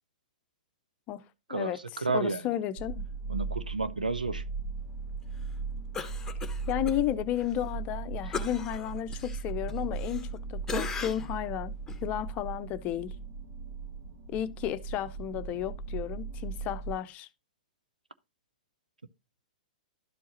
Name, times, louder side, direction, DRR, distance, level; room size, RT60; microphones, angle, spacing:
voice 1, 1.5-2.5 3.3-4.4, right 3 dB, 90° right, 0.6 m, -31 dB
voice 2, 2.1-3.0 6.7-11.7 12.0-13.1 14.3-17.3, left 12 dB, 35° left, 0.6 m, -33 dB
sound 1, 2.8-16.9, right 4 dB, 55° right, 1.5 m, -38 dB
Cough, 5.9-7.0 7.4-7.5 8.3-10.4 10.7-11.4 11.9-12.0, left 5 dB, 10° left, 1.1 m, -37 dB
12.5 x 4.6 x 2.9 m
figure-of-eight pair, 110°, 4 cm